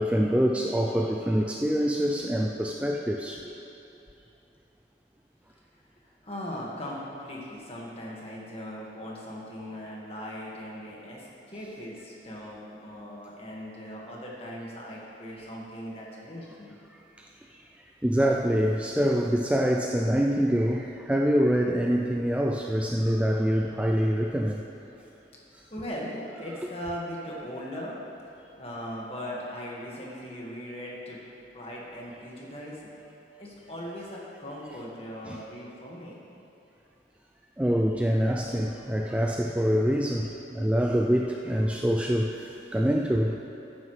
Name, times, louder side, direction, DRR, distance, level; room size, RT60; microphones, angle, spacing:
voice 1, 0.0-3.6 16.9-17.7 18.0-24.6 25.5-25.6 35.3-35.4 37.6-43.4, equal, 5° right, 0 dB, 0.3 m, -25 dB
voice 2, 5.9-16.7 25.7-27.9 28.6-31.2 31.5-32.8 33.4-36.2, equal, 35° left, -4 dB, 1.7 m, -39 dB
13.5 x 9.5 x 3.2 m, 2.8 s
head